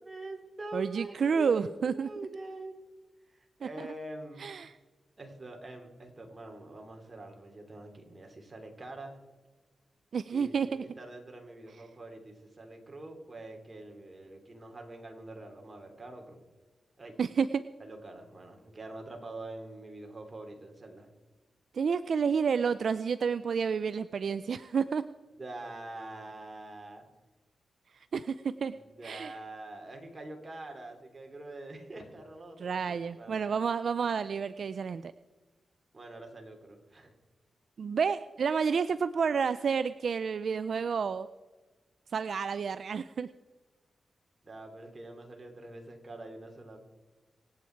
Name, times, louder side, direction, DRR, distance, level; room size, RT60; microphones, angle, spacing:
voice 1, 0.0-2.7 3.3-4.5 5.2-9.2 10.3-16.4 17.0-17.1 17.8-21.1 25.4-27.0 28.7-33.4 35.9-37.1 44.4-46.8, right 2 dB, 30° right, 2 dB, 3.0 m, -45 dB
voice 2, 0.7-2.1 3.6-3.9 4.4-4.7 10.1-10.8 17.2-17.6 21.7-25.0 28.1-28.8 29.0-29.3 32.6-35.1 37.8-41.3 42.1-43.3, right 6 dB, 70° right, 13 dB, 0.4 m, -30 dB
25.0 x 8.6 x 4.6 m, 1.2 s
cardioid pair, 80°, 0 cm